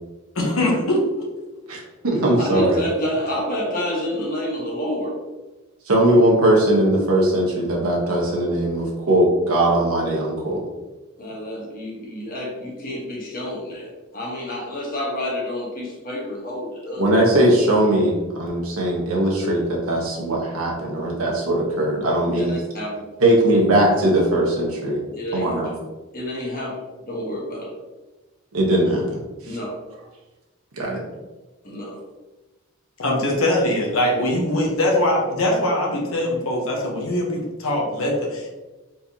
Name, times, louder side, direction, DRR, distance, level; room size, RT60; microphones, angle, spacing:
voice 1, 0.3-1.3 33.0-38.5, left 1 dB, 75° left, -1 dB, 1.0 m, -22 dB
voice 2, 1.7-2.8 5.9-10.6 17.0-22.5 23.2-25.0 25.3-25.7 28.5-29.6 30.8-31.0, right 1 dB, 75° right, -3 dB, 1.1 m, -20 dB
voice 3, 2.4-5.2 11.2-17.1 22.4-23.4 25.1-25.5 26.1-27.7 29.5-29.8 31.6-32.0, left 1 dB, 40° left, -3 dB, 1.1 m, -29 dB
4.4 x 3.7 x 2.8 m, 1.1 s
head